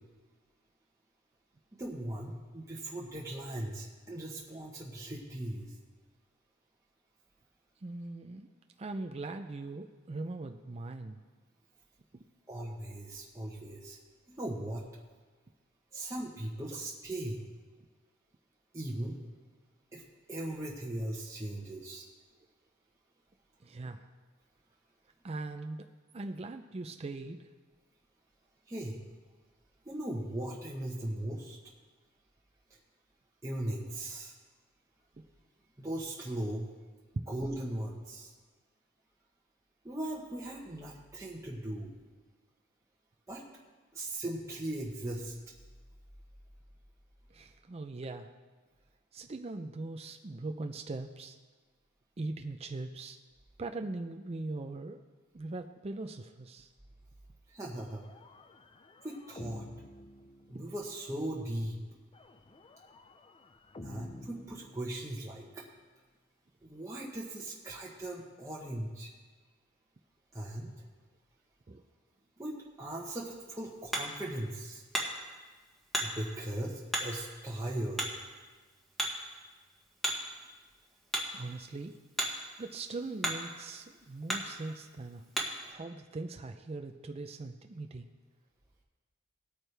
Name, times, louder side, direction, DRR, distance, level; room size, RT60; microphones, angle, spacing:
voice 1, 1.7-5.8 12.5-14.0 14.3-14.9 15.9-17.5 18.7-19.2 19.9-20.0 20.3-22.1 28.7-29.0 29.8-31.6 32.7-32.8 33.4-34.4 35.8-36.7 37.3-38.3 39.8-41.9 43.3-43.4 43.9-45.3 57.5-58.0 59.0-59.6 60.5-61.8 63.8-65.6 66.6-69.1 70.3-70.8 72.4-74.8 76.0-78.2, right 1 dB, 15° right, -4 dB, 1.1 m, -38 dB
voice 2, 7.8-8.5 8.8-11.2 23.6-24.1 25.2-25.9 26.1-27.5 47.3-48.3 49.1-51.4 52.2-53.2 53.6-55.0 55.3-56.7 60.5-60.6 71.7-71.8 81.3-82.0 82.6-85.2 85.6-88.1, right 2 dB, 30° right, 5 dB, 0.5 m, -40 dB
sound 1, 57.8-61.0 62.1-65.4, left 1 dB, 25° left, 0.5 m, -51 dB
Hammer, 73.0-85.7, right 1 dB, ahead, 1.5 m, -39 dB
19.0 x 9.0 x 3.4 m, 1.4 s
head